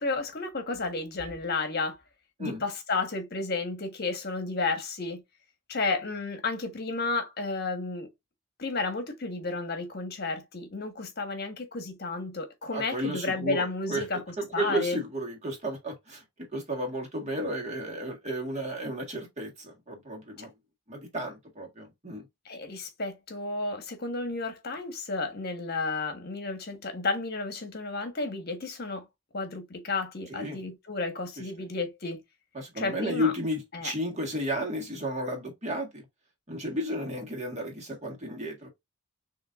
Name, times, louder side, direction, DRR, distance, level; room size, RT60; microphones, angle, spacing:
voice 1, 0.0-2.0 2.4-5.2 5.7-8.1 8.6-14.2 14.5-15.0 22.4-29.0 29.3-32.2 32.8-33.3 33.7-33.9, left 3 dB, 55° left, 1.3 m, -32 dB
voice 2, 12.7-16.2 16.5-20.5 20.9-22.2 30.3-30.6 32.5-36.0 36.5-38.7, equal, 35° right, 1.7 m, -33 dB
6.3 x 3.1 x 2.5 m
head